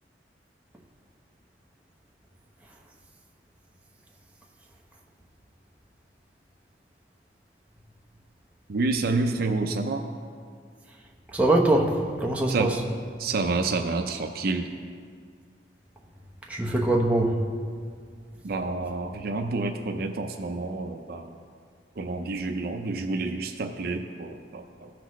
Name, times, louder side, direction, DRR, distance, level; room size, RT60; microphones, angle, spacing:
voice 1, 8.7-10.1 12.5-12.8 13.2-14.7 18.4-21.4 22.0-24.9, right 3 dB, 60° right, 5 dB, 0.5 m, -29 dB
voice 2, 11.3-12.7 16.5-17.4, right 2 dB, 10° right, -1 dB, 0.8 m, -23 dB
15.5 x 5.9 x 3.1 m, 2.1 s
head